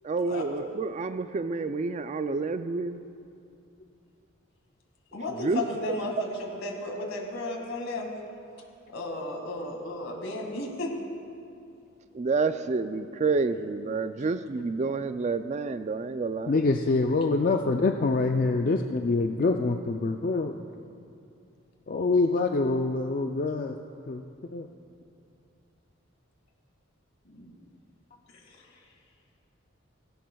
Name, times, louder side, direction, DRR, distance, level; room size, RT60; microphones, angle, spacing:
voice 1, 0.0-3.0 5.3-6.0 12.1-16.5, right 4 dB, 35° right, 11 dB, 0.3 m, -29 dB
voice 2, 5.1-8.1 8.9-10.9 27.3-27.5, left 2 dB, 75° left, 1 dB, 2.0 m, -34 dB
voice 3, 16.5-20.5 21.9-23.8 24.1-24.2 24.5-24.7, left 3 dB, 40° left, 4 dB, 0.4 m, -25 dB
17.5 x 16.5 x 2.3 m, 2.6 s
head